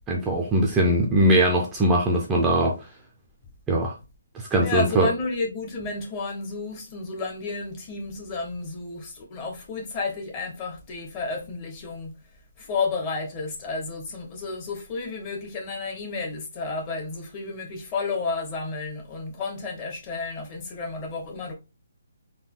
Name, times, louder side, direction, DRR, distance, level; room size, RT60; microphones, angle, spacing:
voice 1, 0.1-2.8 3.7-3.9 4.3-5.1, right 1 dB, 10° right, 0.4 m, -21 dB
voice 2, 4.6-12.1 12.6-21.5, left 4 dB, 20° left, 0.8 m, -31 dB
3.8 x 2.2 x 3.5 m
hypercardioid pair, 170°, 0 cm